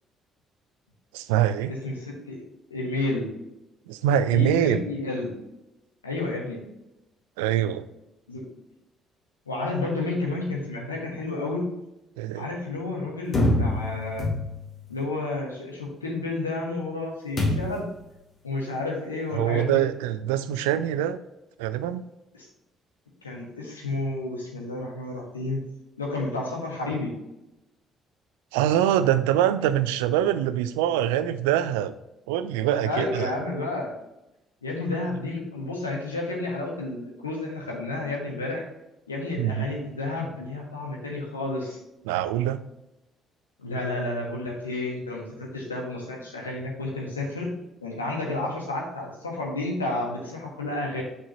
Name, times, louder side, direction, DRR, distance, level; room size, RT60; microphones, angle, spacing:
voice 1, 1.1-1.7 3.9-4.8 7.4-7.9 12.2-12.5 19.4-21.2 21.6-22.0 28.5-31.9 32.3-33.3 39.4-39.7 42.1-42.6, right 11 dB, 70° right, 13 dB, 0.3 m, -24 dB
voice 2, 1.7-2.4 2.7-3.3 4.3-5.3 6.0-6.6 8.3-8.5 9.5-11.6 12.3-14.3 14.9-17.9 18.4-19.8 22.3-22.5 23.2-25.6 26.0-27.1 32.8-33.9 34.6-38.6 39.1-41.8 43.6-47.5 47.8-51.0, left 2 dB, 85° left, -2 dB, 1.3 m, -31 dB
sound 1, 13.3-14.8 17.4-17.9, left 1 dB, 45° left, 1.9 m, -25 dB
6.2 x 5.4 x 2.9 m, 0.92 s
figure-of-eight pair, 45°, 0 cm